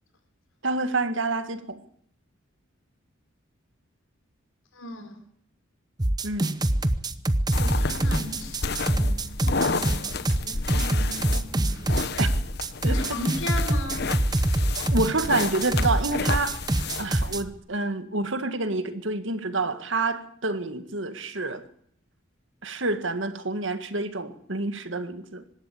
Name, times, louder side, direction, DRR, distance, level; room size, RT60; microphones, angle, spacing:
voice 1, 0.6-1.8 6.2-6.6 12.2-12.3 12.8-13.0 14.8-16.6 17.0-21.7 22.6-25.4, right 3 dB, 65° right, 1.9 m, -28 dB
voice 2, 4.7-5.2 7.5-11.8 12.8-14.1, left 2 dB, 75° left, 4.8 m, -37 dB
sound 1, 6.0-17.4, right 1 dB, 20° right, 0.9 m, -24 dB
sound 2, 7.5-17.4, left 4 dB, 50° left, 1.2 m, -32 dB
24.5 x 13.0 x 8.6 m
head